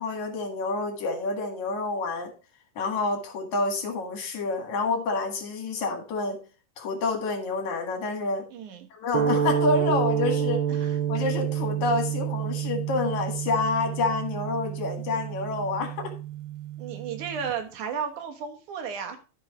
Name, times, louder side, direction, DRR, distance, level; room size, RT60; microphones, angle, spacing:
voice 1, 0.0-2.3 2.8-6.4 6.8-8.5 8.9-10.6 11.1-16.1, left 3 dB, 75° left, 4 dB, 3.2 m, -28 dB
voice 2, 8.5-8.9 10.7-11.0 16.8-19.2, right 7 dB, 85° right, 5 dB, 2.8 m, -34 dB
sound 1, 9.1-17.5, right 9 dB, 65° right, 1.3 m, -29 dB
13.5 x 5.6 x 3.0 m, 0.34 s
omnidirectional pair, 3.4 m